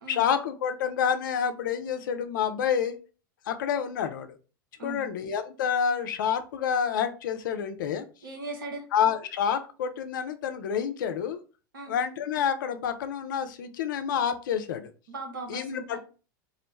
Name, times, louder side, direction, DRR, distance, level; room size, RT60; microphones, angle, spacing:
voice 1, 0.1-3.0 3.5-4.4 4.8-8.1 8.9-11.4 11.9-14.9 15.5-16.0, left 8 dB, 65° left, 9 dB, 0.4 m, -28 dB
voice 2, 8.2-8.9 11.7-11.9 15.1-16.0, right 3 dB, 75° right, 2 dB, 0.8 m, -38 dB
2.4 x 2.0 x 3.1 m, 0.35 s
figure-of-eight pair, 85°, 11 cm